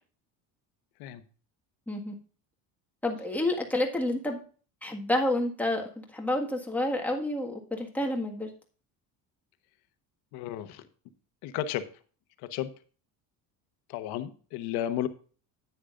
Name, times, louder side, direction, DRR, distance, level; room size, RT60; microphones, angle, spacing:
voice 1, 3.0-4.4 4.8-8.5, left 1 dB, 5° left, 1 dB, 1.7 m, -29 dB
voice 2, 10.3-10.8 11.4-11.8 12.4-12.7 13.9-15.1, left 11 dB, 80° left, 10 dB, 1.1 m, -33 dB
10.0 x 9.4 x 2.5 m, 0.40 s
cardioid pair, 160°, 37 cm